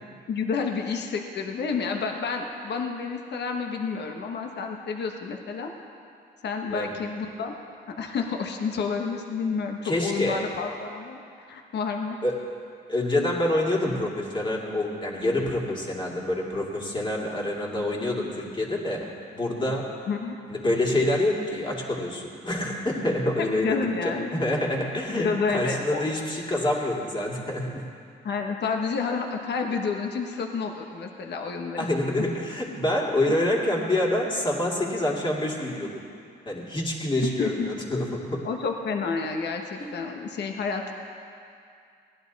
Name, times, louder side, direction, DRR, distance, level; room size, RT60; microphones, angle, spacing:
voice 1, 0.3-5.7 6.4-7.5 7.9-11.2 11.5-12.2 20.1-20.4 23.4-24.4 25.1-26.0 28.2-31.9 37.2-37.7 38.4-40.9, left 5 dB, 60° left, 3 dB, 1.3 m, -30 dB
voice 2, 9.8-10.4 12.2-12.5 12.9-19.9 20.5-27.8 31.8-35.9 36.5-38.4, left 1 dB, 25° left, -2 dB, 2.5 m, -27 dB
17.5 x 11.0 x 4.1 m, 2.4 s
cardioid pair, 90°, 20 cm